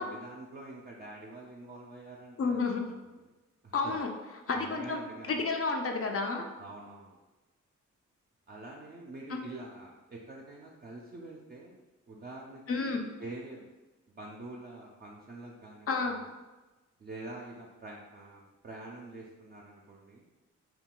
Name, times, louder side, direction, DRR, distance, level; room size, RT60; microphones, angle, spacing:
voice 1, 0.0-2.7 3.0-3.2 3.6-3.9 4.5-5.3 6.5-7.2 8.5-11.8 12.1-13.7 14.1-16.2 17.0-20.2, right 2 dB, 35° right, -2 dB, 0.4 m, -46 dB
voice 2, 2.4-2.9 3.7-4.1 4.5-5.0 5.3-6.4 9.3-9.4 12.7-13.1 15.9-16.2, left 4 dB, 50° left, 3 dB, 0.5 m, -30 dB
2.3 x 2.2 x 3.7 m, 1.1 s
cardioid pair, 75°, 30 cm